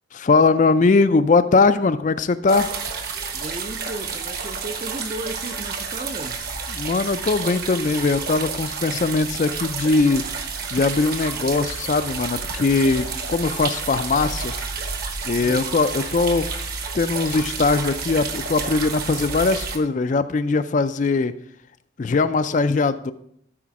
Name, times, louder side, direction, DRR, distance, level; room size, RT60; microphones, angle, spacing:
voice 1, 0.1-2.7 6.7-10.2 10.7-14.5 15.2-16.5 16.9-21.3 22.0-23.1, left 3 dB, 40° left, 0.3 m, -20 dB
sound 1, 2.5-19.8, right 5 dB, 50° right, 1.2 m, -30 dB
voice 2, 3.3-6.5 15.4-15.8, right 2 dB, 30° right, 0.5 m, -35 dB
12.5 x 5.0 x 4.7 m
head